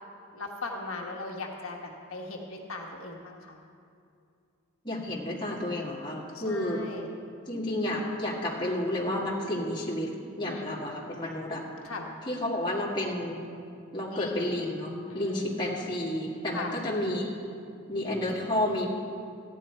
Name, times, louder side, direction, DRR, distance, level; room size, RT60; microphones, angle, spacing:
voice 1, 0.3-3.6 6.3-7.1 10.5-10.7 11.8-12.1 14.1-14.5 15.1-15.5 16.5-16.8, left 3 dB, 75° left, -1 dB, 1.3 m, -38 dB
voice 2, 4.8-6.8 7.5-10.1 10.4-11.6 12.3-13.4 13.9-17.3 17.9-18.9, left 1 dB, 20° left, -5 dB, 1.9 m, -31 dB
14.5 x 10.0 x 4.4 m, 2.5 s
head